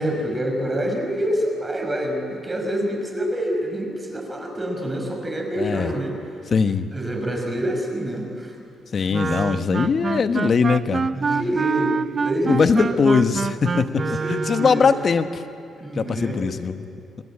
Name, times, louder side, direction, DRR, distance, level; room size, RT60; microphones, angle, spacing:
voice 1, 0.0-6.2 6.9-8.6 9.0-9.1 11.1-12.9 13.9-14.9 15.8-16.5, equal, 20° right, 2 dB, 5.3 m, -27 dB
voice 2, 5.5-5.9 6.5-6.9 8.9-11.1 12.5-14.0 14.3-15.4 15.9-16.9, left 5 dB, 45° left, 9 dB, 1.3 m, -21 dB
Wind instrument woodwind instrument, 9.1-14.9, right 5 dB, 40° right, 0.6 m, -26 dB
28.0 x 20.0 x 8.7 m, 2.5 s
cardioid pair, 90°, 0 cm